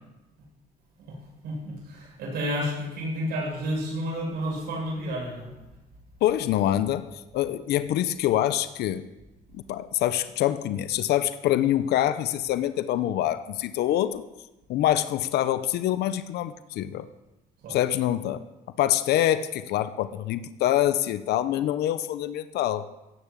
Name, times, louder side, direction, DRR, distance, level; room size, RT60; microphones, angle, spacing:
voice 1, 1.4-5.5 17.6-17.8, equal, 70° right, -2 dB, 6.5 m, -31 dB
voice 2, 6.2-7.1 7.3-9.1 9.5-14.2 14.7-17.1 17.7-18.4 18.8-22.9, left 12 dB, 75° left, 12 dB, 0.8 m, -25 dB
16.0 x 7.0 x 8.3 m, 1.0 s
cardioid pair, 110°, 17 cm